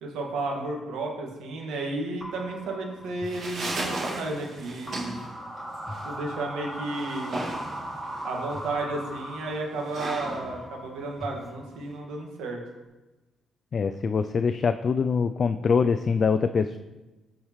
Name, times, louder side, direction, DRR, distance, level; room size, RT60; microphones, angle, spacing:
voice 1, 0.0-5.2 6.1-7.4 8.2-12.6, right 2 dB, 90° right, 0 dB, 1.8 m, -33 dB
sound 1, 2.2-4.3 4.9-6.9 7.5-9.8 10.2-12.3, left 1 dB, 5° left, 0.8 m, -45 dB
sound 2, 3.0-12.0, right 2 dB, 55° right, 2.1 m, -37 dB
sound 3, 5.0-10.0, right 1 dB, 10° right, 1.3 m, -38 dB
voice 2, 13.7-16.8, left 5 dB, 45° left, 10 dB, 0.3 m, -24 dB
14.0 x 4.9 x 3.1 m, 1.1 s
cardioid pair, 90°, 0 cm